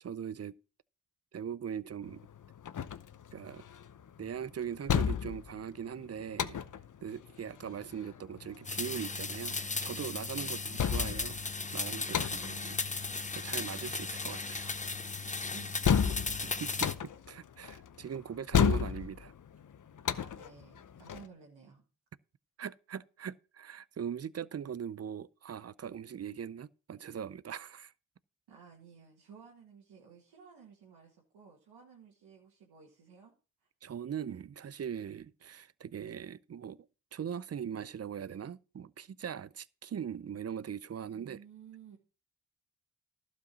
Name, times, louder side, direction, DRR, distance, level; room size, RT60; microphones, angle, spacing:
voice 1, 0.0-0.5 1.3-2.2 3.3-3.6 4.2-6.6 7.0-11.4 11.7-12.8 13.3-14.7 16.6-16.9 17.3-19.3 22.6-27.9 33.8-36.8 37.1-41.4, right 8 dB, 40° right, 0.6 m, -40 dB
sound 1, 2.0-21.3, left 7 dB, 50° left, 0.8 m, -34 dB
sound 2, 8.6-16.9, left 3 dB, 20° left, 0.8 m, -36 dB
voice 2, 10.4-10.9 12.1-12.9 15.5-16.5 16.9-17.0 20.1-21.8 28.5-33.3 41.1-42.0, right 6 dB, 90° right, 1.9 m, -54 dB
12.0 x 5.2 x 6.2 m
supercardioid pair, 40°, 38 cm